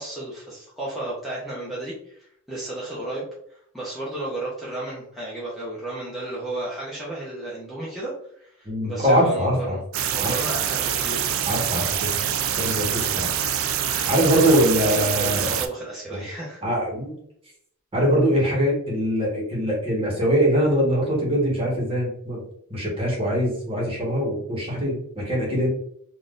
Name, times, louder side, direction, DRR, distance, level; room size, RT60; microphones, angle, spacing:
voice 1, 0.0-8.1 8.4-9.8 10.1-11.4 13.1-13.3 14.2-16.6, right 1 dB, ahead, -9 dB, 0.7 m, -33 dB
voice 2, 8.6-9.8 10.2-10.3 11.5-12.1 12.5-13.3 13.8-15.5 16.1-16.2 16.6-17.1 17.9-22.4 22.7-25.7, equal, 25° right, -3 dB, 1.2 m, -22 dB
sound 1, 9.9-15.7, right 9 dB, 70° right, 0.4 m, -25 dB
3.7 x 2.6 x 2.4 m, 0.68 s
head